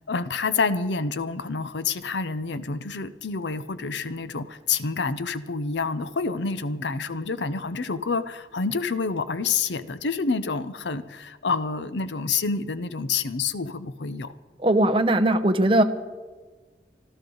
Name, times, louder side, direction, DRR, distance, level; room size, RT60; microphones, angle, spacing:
voice 1, 0.0-14.3, left 4 dB, 80° left, 13 dB, 0.7 m, -28 dB
voice 2, 14.6-15.8, right 1 dB, 30° right, 8 dB, 0.9 m, -19 dB
25.0 x 13.5 x 3.9 m, 1.3 s
head